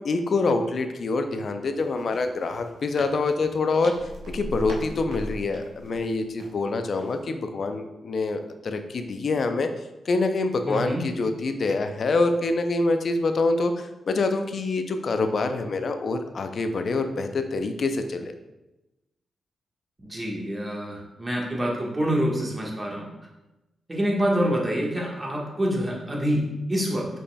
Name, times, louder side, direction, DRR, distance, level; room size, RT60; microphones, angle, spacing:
voice 1, 0.0-3.9 4.3-9.7 10.1-18.3, left 3 dB, 60° left, 7 dB, 0.5 m, -26 dB
sound 1, 1.8-6.6 7.0-7.2, right 2 dB, 85° right, 0.7 m, -45 dB
sound 2, 3.9-6.3, equal, 25° left, 1.1 m, -37 dB
voice 2, 10.6-11.0 20.0-23.1 23.9-27.1, equal, 25° right, -2 dB, 1.4 m, -26 dB
5.3 x 4.1 x 2.2 m, 0.99 s
supercardioid pair, 55°, 0 cm